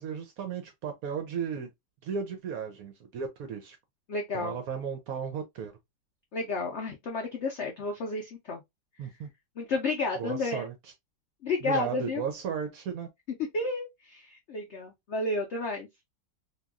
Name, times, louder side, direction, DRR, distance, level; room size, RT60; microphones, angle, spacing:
voice 1, 0.0-1.7 2.0-3.8 4.3-5.7 9.0-9.3 10.2-10.9 11.6-13.1, right 7 dB, 70° right, 0.8 m, -35 dB
voice 2, 4.1-4.6 6.3-8.6 9.6-10.7 11.4-12.2 13.5-15.9, left 3 dB, 85° left, 0.6 m, -31 dB
2.9 x 2.5 x 2.3 m
omnidirectional pair, 1.9 m